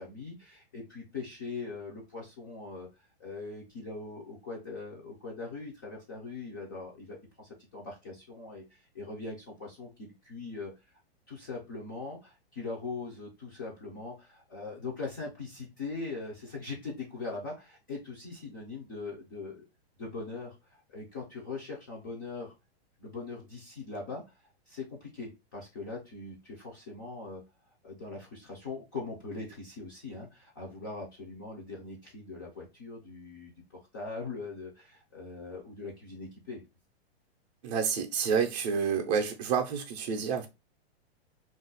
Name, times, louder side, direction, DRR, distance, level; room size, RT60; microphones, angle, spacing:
voice 1, 0.0-2.9 3.2-10.7 11.3-19.6 20.0-20.6 20.9-22.5 23.0-24.2 24.7-27.4 27.8-33.5 33.9-36.6, left 3 dB, 20° left, 0.4 m, -41 dB
voice 2, 37.6-40.5, right 6 dB, 40° right, 0.5 m, -29 dB
2.4 x 2.0 x 3.8 m
supercardioid pair, 170°, 32 cm